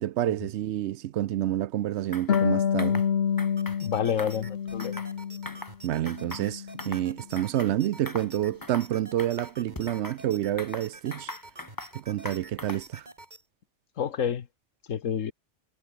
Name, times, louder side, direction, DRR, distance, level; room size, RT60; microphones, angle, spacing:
voice 1, 0.0-3.0 5.8-11.3 11.9-13.0, right 13 dB, 70° right, 0.8 m, -28 dB
sound 1, 2.1-2.5 2.8-3.1 3.4-3.8 4.1-5.1 5.5-5.8 6.1-7.1 7.4-7.7 8.1-8.3 8.6-8.9 9.2-10.2 10.6-12.0 12.3-12.9, left 2 dB, 15° left, 1.5 m, -41 dB
Harp, 2.3-5.7 6.0-7.1, left 7 dB, 55° left, 1.1 m, -28 dB
sound 2, 3.6-13.4, right 2 dB, 35° right, 3.4 m, -49 dB
voice 2, 3.8-5.0 14.0-14.5 14.9-15.3, left 8 dB, 85° left, 1.5 m, -29 dB
omnidirectional pair, 1.3 m